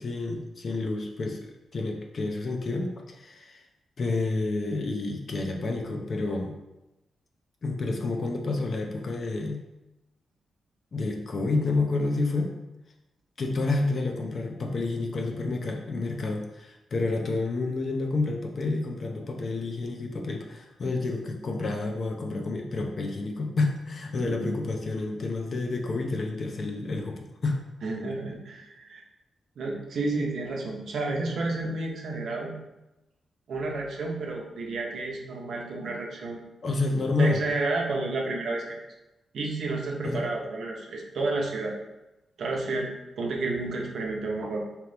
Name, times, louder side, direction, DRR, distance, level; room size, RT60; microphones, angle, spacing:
voice 1, 0.0-3.6 4.0-6.5 7.6-9.6 10.9-12.5 13.4-27.6 36.6-37.4 40.0-40.3, left 3 dB, 45° left, 3 dB, 0.6 m, -29 dB
voice 2, 24.2-24.5 27.8-29.0 29.6-32.5 33.5-36.4 37.2-38.8 39.3-41.8 42.4-42.9 43.2-44.6, right 2 dB, 70° right, 0 dB, 0.7 m, -31 dB
3.8 x 3.0 x 3.4 m, 0.95 s
cardioid pair, 110°, 0 cm